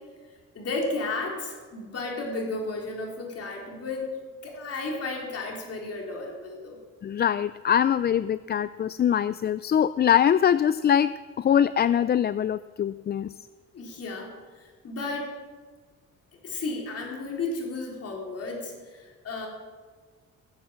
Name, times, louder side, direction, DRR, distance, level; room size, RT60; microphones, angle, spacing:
voice 1, 0.5-4.2 4.4-6.8 13.7-15.3 16.4-19.5, left 3 dB, 50° left, 0 dB, 3.9 m, -33 dB
voice 2, 7.0-13.3, left 9 dB, 35° left, 16 dB, 0.4 m, -23 dB
18.5 x 8.0 x 7.5 m, 1.5 s
cardioid pair, 90°, 30 cm